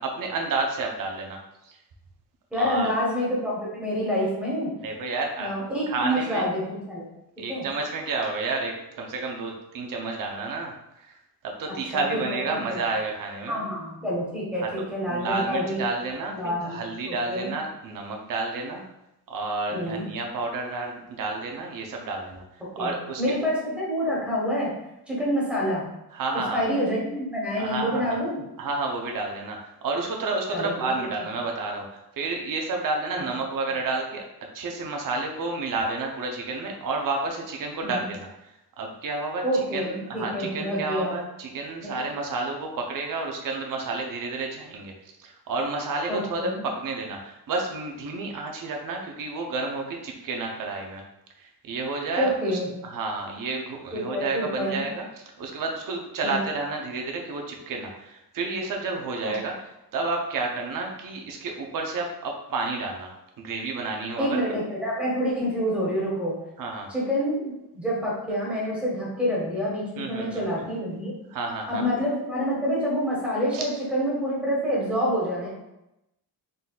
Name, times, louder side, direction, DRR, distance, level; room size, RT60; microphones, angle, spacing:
voice 1, 0.0-1.8 2.6-2.9 4.8-5.5 5.9-6.5 7.4-11.2 11.4-13.6 14.6-14.7 15.1-18.8 19.3-22.4 22.8-23.3 26.1-26.6 27.6-28.2 28.6-34.2 34.5-38.3 38.8-51.0 51.4-64.4 66.6-66.9 70.0-70.5 71.3-71.9 73.5-73.7, right 3 dB, 55° right, 1 dB, 0.7 m, -30 dB
voice 2, 2.5-4.7 5.4-7.1 7.5-7.7 11.9-12.8 13.5-15.8 16.3-17.5 19.7-20.1 22.8-24.7 25.1-25.8 26.5-28.4 30.5-31.0 37.8-38.1 39.4-41.2 41.8-42.1 46.1-46.6 52.1-52.7 53.9-54.8 56.2-56.4 59.2-59.3 64.2-66.4 66.9-71.1 71.7-75.5, equal, 5° right, -6 dB, 1.4 m, -27 dB
4.0 x 3.9 x 2.3 m, 0.90 s
wide cardioid pair, 165°, 39 cm